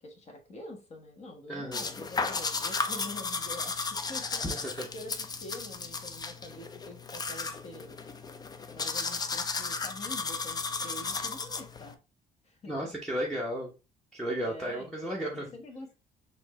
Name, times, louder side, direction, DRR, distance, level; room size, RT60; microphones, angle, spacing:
voice 1, 0.0-4.4 4.8-7.9 8.7-12.0 12.4-12.9 14.4-15.9, left 1 dB, 40° left, 3 dB, 1.3 m, -46 dB
voice 2, 1.5-1.9 4.4-4.8 12.7-13.7 14.1-15.6, right 1 dB, 5° left, -2 dB, 0.8 m, -34 dB
sound 1, 1.7-11.9, left 4 dB, 25° left, 0.5 m, -34 dB
4.3 x 2.7 x 3.1 m, 0.30 s
cardioid pair, 110°, 17 cm